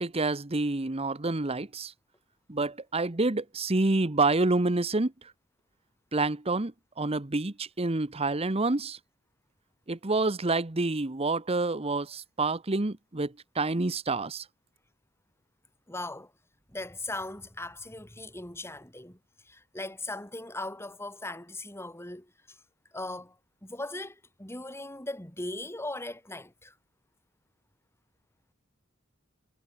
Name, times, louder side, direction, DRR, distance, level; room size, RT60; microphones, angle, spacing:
voice 1, 0.0-1.9 2.5-5.1 6.1-9.0 9.9-14.4, right 2 dB, 30° right, 1.1 m, -28 dB
voice 2, 15.9-16.3 16.7-19.2 19.4-22.6 22.9-26.7, left 2 dB, 15° left, 4.8 m, -39 dB
head